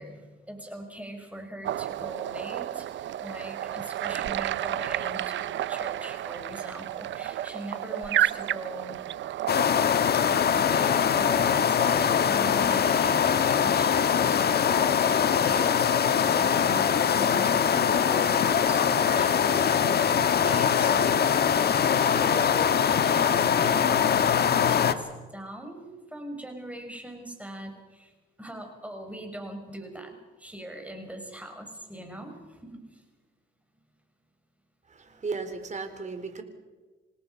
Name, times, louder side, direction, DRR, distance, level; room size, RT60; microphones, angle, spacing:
voice 1, 0.0-9.0 10.2-24.4 24.7-28.1 28.4-33.0, right 1 dB, 5° right, 4 dB, 5.8 m, -41 dB
sound 1, 1.6-9.8, right 12 dB, 70° right, 0.7 m, -31 dB
sound 2, 9.5-24.9, left 8 dB, 55° left, 1.5 m, -22 dB
voice 2, 34.9-36.4, right 4 dB, 35° right, 7 dB, 3.8 m, -35 dB
28.0 x 18.5 x 5.7 m, 1.3 s
cardioid pair, 90°, 20 cm